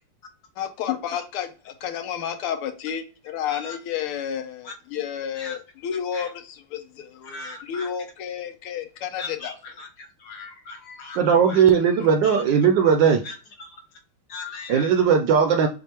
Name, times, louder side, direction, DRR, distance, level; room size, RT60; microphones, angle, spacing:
voice 1, 0.6-9.5, left 9 dB, 90° left, 7 dB, 1.7 m, -31 dB
voice 2, 3.4-3.8 4.6-4.7 5.3-5.6 6.1-6.3 7.2-7.9 9.2-12.4 13.2-13.8 14.3-14.9, left 4 dB, 65° left, 4 dB, 1.0 m, -39 dB
voice 3, 11.1-13.2 14.7-15.7, right 7 dB, 75° right, 6 dB, 1.1 m, -18 dB
6.6 x 2.5 x 2.9 m, 0.36 s
omnidirectional pair, 2.4 m